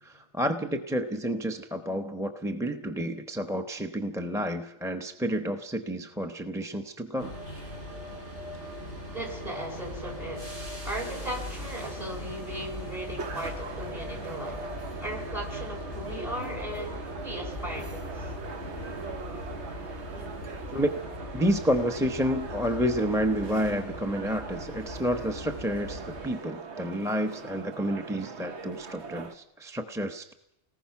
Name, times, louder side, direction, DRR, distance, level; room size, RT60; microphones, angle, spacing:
voice 1, 0.0-7.4 20.7-21.0 21.3-30.3, equal, 5° right, 5 dB, 0.8 m, -30 dB
sound 1, 7.2-26.3, left 1 dB, 65° right, 5.1 m, -39 dB
voice 2, 9.1-14.6 15.0-18.3 20.1-20.3, right 1 dB, 35° right, 2 dB, 5.4 m, -37 dB
sound 2, 13.2-29.3, right 4 dB, 80° right, 1.4 m, -42 dB
29.0 x 19.5 x 5.8 m, 0.83 s
omnidirectional pair, 1.1 m